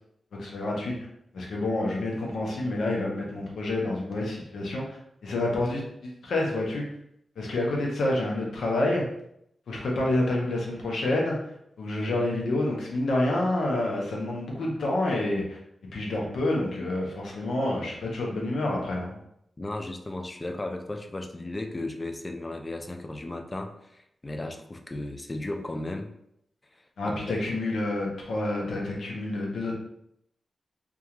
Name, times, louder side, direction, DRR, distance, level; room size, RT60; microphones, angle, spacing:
voice 1, 0.4-0.9 1.3-5.0 5.2-6.9 7.4-9.0 9.7-11.3 11.8-15.6 15.9-19.1 27.0-29.7, left 2 dB, 85° left, -2 dB, 0.7 m, -28 dB
voice 2, 19.6-26.1 27.1-27.6, left 2 dB, 25° left, 5 dB, 0.3 m, -35 dB
2.3 x 2.3 x 2.9 m, 0.75 s
cardioid pair, 85°, 0 cm